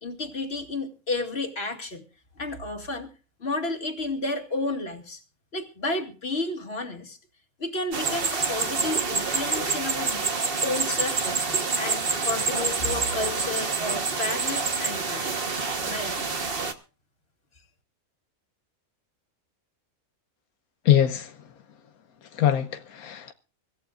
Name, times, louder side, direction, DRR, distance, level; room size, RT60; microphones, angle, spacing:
voice 1, 0.0-2.0 2.4-3.1 3.4-5.2 5.5-7.2 7.6-10.3 10.6-11.4 11.8-15.3 15.8-16.2, left 2 dB, 45° left, 2.5 m, -31 dB
sound 1, 7.9-16.7, right 4 dB, 40° right, 1.4 m, -27 dB
voice 2, 20.8-21.3 22.3-23.3, left 11 dB, 85° left, 1.4 m, -22 dB
25.0 x 14.5 x 2.5 m
omnidirectional pair, 1.5 m